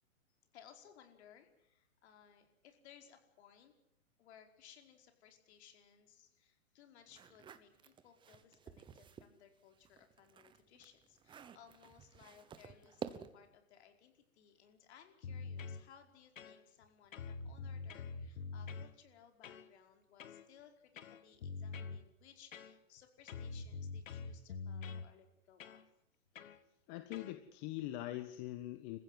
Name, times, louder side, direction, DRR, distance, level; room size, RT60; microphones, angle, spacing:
voice 1, 0.5-3.7 4.2-25.8, left 9 dB, 50° left, 6 dB, 5.0 m, -62 dB
sound 1, 7.1-9.3 9.7-13.5, right 7 dB, 10° right, 1.0 m, -51 dB
sound 2, 15.2-15.8 16.4-16.8 17.1-18.9 19.4-19.7 20.2-20.5 21.0-22.0 22.5-23.0 23.3-25.1 25.6-25.8 26.4-26.6 27.1-27.4, left 4 dB, 65° left, 2.1 m, -45 dB
voice 2, 26.9-29.0, left 15 dB, 30° left, 9 dB, 1.5 m, -43 dB
29.0 x 15.5 x 8.0 m, 0.78 s
hypercardioid pair, 135°, 41 cm